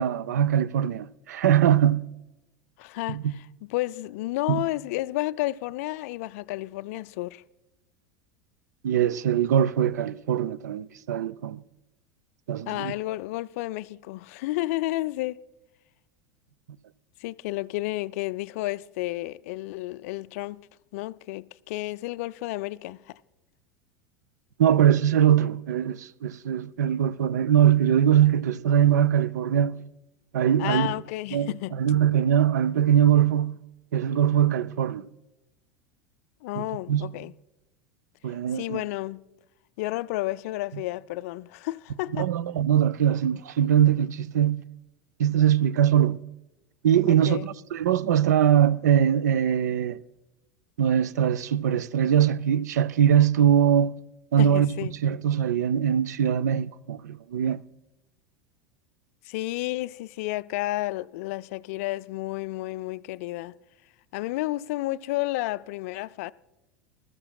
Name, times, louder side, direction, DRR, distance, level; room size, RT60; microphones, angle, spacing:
voice 1, 0.0-2.1 3.1-3.3 4.5-4.6 8.8-11.6 12.5-12.9 24.6-29.8 30.3-30.9 31.3-33.6 33.9-35.0 36.6-37.1 38.2-38.8 42.1-44.6 45.2-46.2 46.8-50.0 50.8-53.9 54.3-54.7 55.0-57.6, right 9 dB, 65° right, 0.4 m, -22 dB
voice 2, 2.8-3.4 3.7-7.4 12.7-15.4 17.2-23.2 30.6-31.8 36.4-37.3 38.5-39.2 39.8-42.3 47.1-47.5 54.4-54.9 59.2-63.6 64.1-66.3, left 18 dB, 55° left, 0.4 m, -31 dB
21.5 x 13.5 x 2.3 m
figure-of-eight pair, 80°, 10 cm